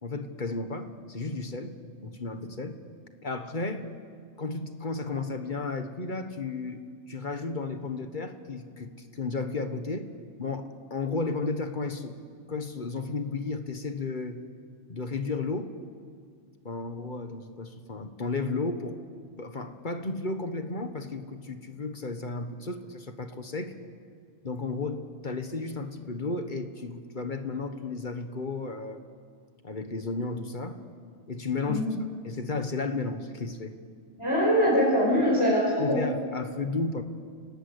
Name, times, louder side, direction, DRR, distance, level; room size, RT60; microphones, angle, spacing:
voice 1, 0.0-2.8 3.2-3.9 4.4-6.8 7.1-10.1 10.4-12.2 12.5-14.4 14.9-15.8 16.6-19.0 19.4-23.7 24.4-29.0 29.6-30.8 31.3-31.9 32.2-33.7 35.8-37.0, left 3 dB, 40° left, 8 dB, 1.6 m, -33 dB
voice 2, 31.7-32.0 34.2-36.0, equal, 20° left, -5 dB, 5.2 m, -23 dB
29.0 x 19.0 x 8.2 m, 2.1 s
omnidirectional pair, 1.3 m